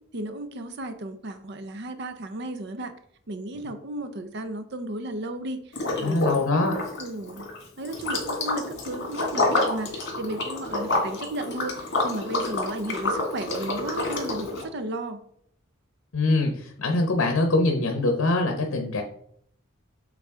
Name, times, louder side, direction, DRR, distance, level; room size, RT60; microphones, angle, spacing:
voice 1, 0.1-2.9 3.3-7.5 7.8-15.2, right 2 dB, 55° right, 8 dB, 0.6 m, -34 dB
Liquid, 5.7-6.4 6.7-14.6, left 2 dB, 60° left, 1.9 m, -28 dB
voice 2, 6.0-6.7 16.1-19.0, left 2 dB, 80° left, 3 dB, 0.8 m, -23 dB
7.3 x 3.8 x 3.6 m, 0.66 s
head